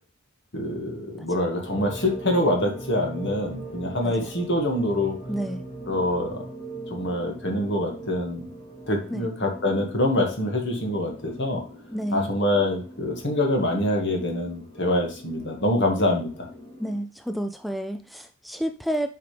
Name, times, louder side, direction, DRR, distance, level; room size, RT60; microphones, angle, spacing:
voice 1, 0.5-5.2 5.9-6.4 6.9-8.5 8.9-11.6 12.1-16.5, left 1 dB, 60° left, 2 dB, 1.9 m, -25 dB
sound 1, 1.6-17.0, right 1 dB, 35° left, 2.4 m, -40 dB
voice 2, 5.3-5.6 9.1-9.3 11.9-12.3 16.8-19.1, right 1 dB, ahead, 8 dB, 0.3 m, -30 dB
7.6 x 5.1 x 3.3 m, 0.40 s
head